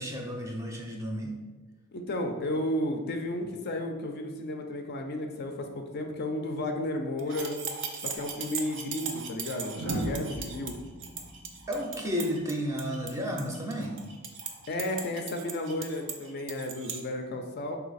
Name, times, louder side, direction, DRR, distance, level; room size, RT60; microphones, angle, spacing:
voice 1, 0.0-1.3 11.7-14.0, equal, 15° right, 0 dB, 0.5 m, -32 dB
voice 2, 1.9-7.6 8.0-10.8 14.7-17.8, left 1 dB, 45° left, 4 dB, 0.4 m, -33 dB
sound 1, 7.2-17.0, right 6 dB, 60° right, 0.5 m, -39 dB
sound 2, 8.3-8.4 9.7-12.8 14.3-14.6, right 1 dB, 90° right, 1.0 m, -37 dB
3.9 x 2.8 x 4.0 m, 1.3 s
head